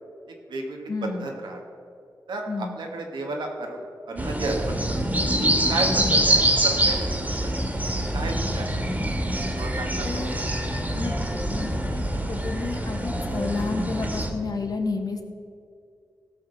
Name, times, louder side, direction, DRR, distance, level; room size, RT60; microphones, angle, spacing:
voice 1, 0.3-1.6 2.3-5.0 5.4-7.5 7.9-8.8 9.5-10.3, right 2 dB, 85° right, 1 dB, 1.6 m, -33 dB
voice 2, 0.9-1.3 2.5-2.8 5.9-6.2 10.0-10.3 10.9-15.2, left 3 dB, 55° left, 4 dB, 1.4 m, -31 dB
sound 1, 4.2-14.3, right 1 dB, 20° right, 1.9 m, -25 dB
16.0 x 6.1 x 5.4 m, 2.4 s
cardioid pair, 55°, 8 cm